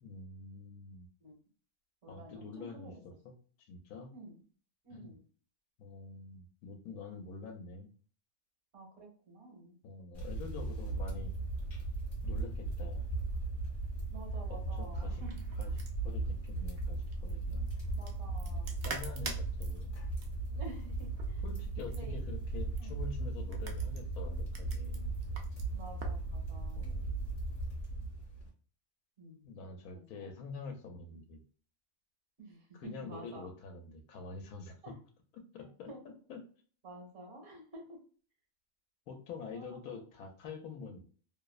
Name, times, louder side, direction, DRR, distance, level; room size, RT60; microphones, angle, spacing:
voice 1, 0.0-1.1 2.1-4.1 4.9-5.1 5.8-7.9 9.8-11.3 12.2-13.1 14.5-15.2 15.6-15.8 16.0-17.7 18.8-20.0 21.4-25.1 26.7-27.3 29.4-31.4 32.7-34.7 35.5-35.9 36.3-36.4 39.1-41.0, left 4 dB, 80° left, 4 dB, 1.1 m, -46 dB
voice 2, 2.0-3.0 4.1-4.4 4.8-5.2 8.7-9.7 14.1-15.4 17.9-18.7 19.7-19.8 20.5-21.4 21.9-22.2 22.8-23.0 25.7-26.8 29.2-29.4 29.9-30.3 31.1-31.2 32.4-33.5 34.8-35.0 35.6-36.0 36.8-38.0 39.5-40.0, right 2 dB, 50° right, -2 dB, 1.4 m, -50 dB
sound 1, 10.1-28.5, right 2 dB, 40° left, 1.1 m, -37 dB
sound 2, 15.1-26.2, right 4 dB, 75° right, 0.5 m, -49 dB
2.9 x 2.0 x 2.3 m, 0.42 s
omnidirectional pair, 1.6 m